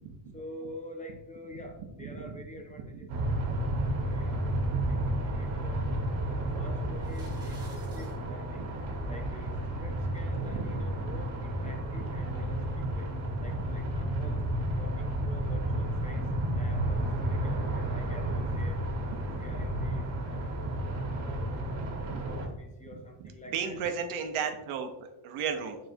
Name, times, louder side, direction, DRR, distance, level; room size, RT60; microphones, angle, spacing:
voice 1, 0.3-3.4 4.1-4.5 4.8-5.9 6.3-8.7 9.1-13.1 13.4-14.5 14.7-18.8 19.4-20.1 21.1-21.6 22.0-23.8 25.4-25.7, left 1 dB, 15° left, 3 dB, 0.5 m, -47 dB
voice 2, 2.0-2.4 2.8-3.0 8.5-8.9 9.3-9.4 10.4-10.7 11.6-12.0 13.4-13.8 14.3-14.5 18.3-18.4 19.1-19.7 21.1-21.3 22.0-22.2 22.9-25.8, right 6 dB, 85° right, 6 dB, 0.8 m, -37 dB
sound 1, 3.1-22.5, right 1 dB, 65° right, 1.3 m, -32 dB
sound 2, 6.9-8.2, right 1 dB, 10° right, 1.1 m, -53 dB
4.9 x 4.0 x 2.6 m, 0.95 s
cardioid pair, 110°, 49 cm